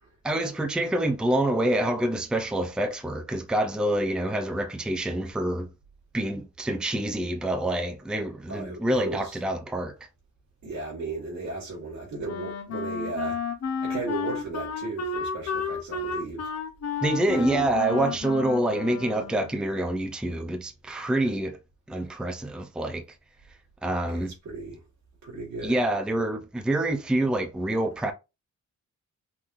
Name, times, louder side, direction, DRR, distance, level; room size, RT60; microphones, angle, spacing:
voice 1, 0.2-5.7 6.1-9.9 17.0-21.6 21.9-23.0 23.8-24.3 25.6-28.1, right 1 dB, 5° right, 0.5 m, -26 dB
voice 2, 8.5-9.4 10.6-13.4 13.8-16.4 17.2-17.6 18.0-18.2 24.1-24.8 25.2-25.8, right 3 dB, 65° right, 2.9 m, -35 dB
Wind instrument woodwind instrument, 12.2-19.6, left 5 dB, 55° left, 0.8 m, -32 dB
5.8 x 3.2 x 2.5 m
wide cardioid pair, 180°, 30 cm